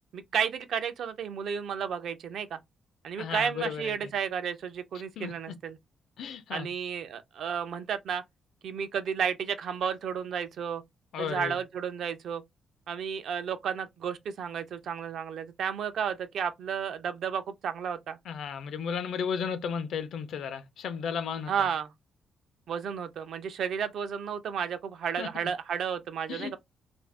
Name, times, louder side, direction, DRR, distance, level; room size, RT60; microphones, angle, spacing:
voice 1, 0.1-2.6 3.0-5.8 6.5-8.2 8.6-10.8 11.2-12.4 12.9-18.2 21.5-21.9 22.7-26.6, right 7 dB, 55° right, 0.5 m, -32 dB
voice 2, 3.2-4.0 5.2-5.3 6.2-6.7 11.1-11.6 18.3-21.7 25.2-25.3 26.3-26.6, left 7 dB, 65° left, 0.5 m, -34 dB
2.7 x 2.5 x 3.3 m
cardioid pair, 180°, 0 cm